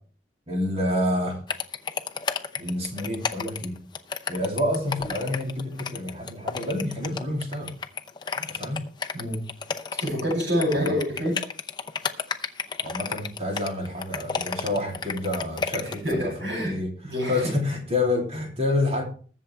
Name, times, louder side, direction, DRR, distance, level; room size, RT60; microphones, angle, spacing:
voice 1, 0.5-1.4 2.6-3.8 4.3-7.7 8.4-8.8 10.7-11.0 12.8-16.9 17.3-19.0, left 1 dB, 35° right, 1 dB, 2.9 m, -28 dB
sound 1, 1.5-16.1, left 5 dB, 25° left, 0.7 m, -31 dB
voice 2, 10.0-11.4 15.8-16.8 17.0-17.5, equal, 90° right, -1 dB, 6.6 m, -27 dB
21.0 x 7.3 x 3.3 m, 0.41 s
head